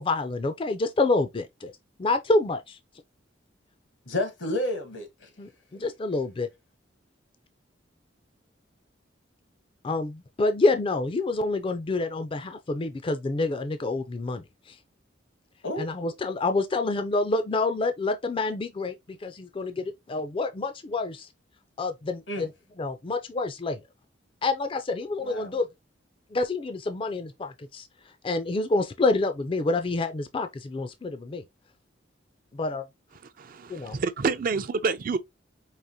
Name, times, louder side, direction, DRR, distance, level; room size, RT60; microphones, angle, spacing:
voice 1, 0.0-1.4 2.0-2.8 5.4-6.5 9.8-14.4 15.8-21.3 21.8-22.5 22.8-23.8 24.4-25.7 26.3-27.9 28.2-31.4 32.6-32.8 33.7-34.0, left 3 dB, 30° left, 0.4 m, -27 dB
voice 2, 4.1-5.3 15.6-15.9 22.3-22.5 25.2-25.6, left 1 dB, 80° left, 1.3 m, -31 dB
voice 3, 33.4-35.2, right 4 dB, 50° right, 0.5 m, -28 dB
4.9 x 2.9 x 2.7 m
head